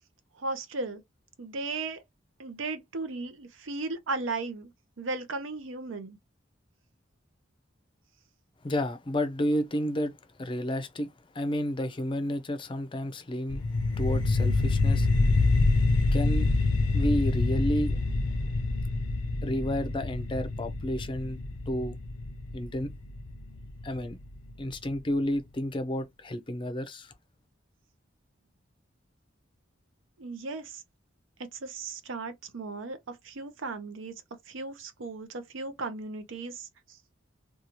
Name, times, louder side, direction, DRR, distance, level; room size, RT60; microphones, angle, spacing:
voice 1, 0.4-1.0 1.4-2.0 2.4-4.7 5.0-6.2 30.2-30.8 31.5-36.7, right 3 dB, 85° right, 0.6 m, -36 dB
voice 2, 8.6-10.1 10.4-13.6 14.0-15.5 16.1-16.5 16.9-18.0 19.4-21.4 21.7-22.0 22.5-22.9 23.8-24.2 24.6-27.1, equal, 25° left, 0.4 m, -31 dB
sound 1, 13.5-24.5, left 3 dB, 90° left, 0.5 m, -26 dB
2.6 x 2.3 x 2.9 m
head